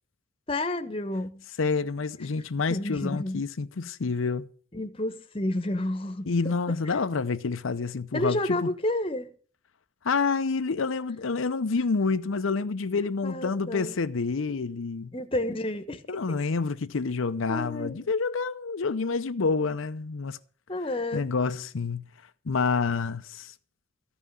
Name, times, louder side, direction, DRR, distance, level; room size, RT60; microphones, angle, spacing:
voice 1, 0.5-1.4 2.7-3.4 4.7-6.5 6.9-7.0 8.1-9.3 13.2-14.0 15.1-16.0 17.5-18.1 20.7-21.2, left 1 dB, 25° left, 1.1 m, -30 dB
voice 2, 1.6-4.5 6.3-8.7 10.0-15.1 16.1-20.4 21.1-22.1 22.5-23.5, left 4 dB, 90° left, 0.6 m, -28 dB
14.0 x 5.6 x 9.5 m
head